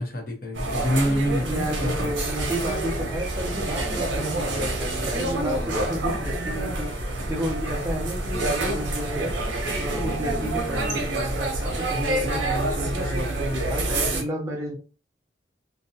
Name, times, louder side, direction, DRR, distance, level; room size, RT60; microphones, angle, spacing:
voice 1, 0.0-2.1, equal, 50° left, 1 dB, 0.8 m, -26 dB
sound 1, 0.5-14.2, right 2 dB, 85° right, 0.7 m, -27 dB
voice 2, 1.4-9.3 9.8-14.8, equal, 15° right, 0 dB, 0.5 m, -32 dB
2.6 x 2.1 x 2.7 m, 0.36 s
head